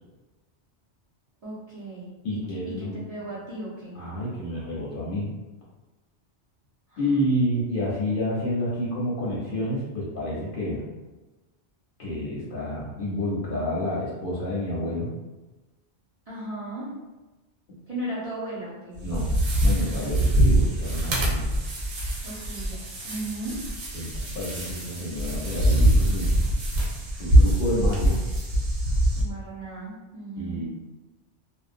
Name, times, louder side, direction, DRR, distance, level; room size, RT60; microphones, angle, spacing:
voice 1, 1.4-2.1 2.7-2.8 3.1-3.9 6.9-7.2 16.3-16.9 17.9-19.0 22.2-23.6 29.2-30.6, right 1 dB, 40° right, -8 dB, 0.6 m, -36 dB
voice 2, 2.2-3.0 3.9-5.3 7.0-10.9 12.0-15.1 19.0-19.3 19.6-21.6 23.9-26.3 27.2-28.2 30.4-30.7, equal, 55° left, -6 dB, 0.7 m, -29 dB
sound 1, 18.9-29.2, right 1 dB, 75° right, 1.0 m, -23 dB
2.6 x 2.1 x 2.4 m, 1.1 s
omnidirectional pair, 1.2 m